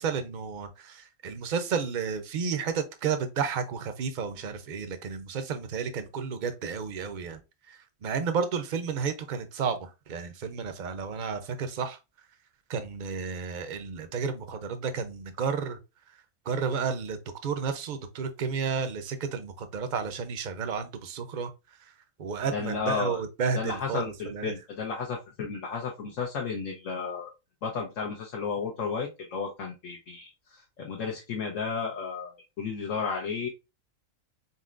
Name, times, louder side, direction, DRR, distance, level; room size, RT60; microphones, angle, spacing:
voice 1, 0.0-7.4 7.7-12.0 12.7-15.8 16.5-21.5 22.2-24.5, right 6 dB, 50° right, 0.6 m, -32 dB
voice 2, 22.5-23.2 23.5-27.3 27.6-33.5, left 5 dB, 75° left, 1.2 m, -33 dB
4.2 x 4.1 x 2.4 m
omnidirectional pair, 1.4 m